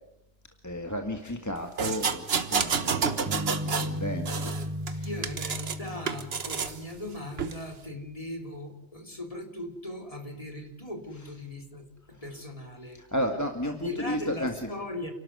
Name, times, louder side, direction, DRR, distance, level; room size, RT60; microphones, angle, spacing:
voice 1, 0.6-4.5 4.9-5.3 11.2-11.4 12.9-14.7, equal, 15° left, 4 dB, 1.9 m, -33 dB
sound 1, 1.8-3.9 4.3-5.8 6.1-6.8 7.4-7.6, right 5 dB, 65° right, 1.5 m, -29 dB
sound 2, 3.3-7.5, equal, 15° right, 1.2 m, -36 dB
voice 2, 5.0-13.0 13.6-15.1, left 1 dB, 30° left, 4 dB, 3.4 m, -39 dB
29.0 x 12.5 x 9.5 m, 0.89 s
omnidirectional pair, 1.1 m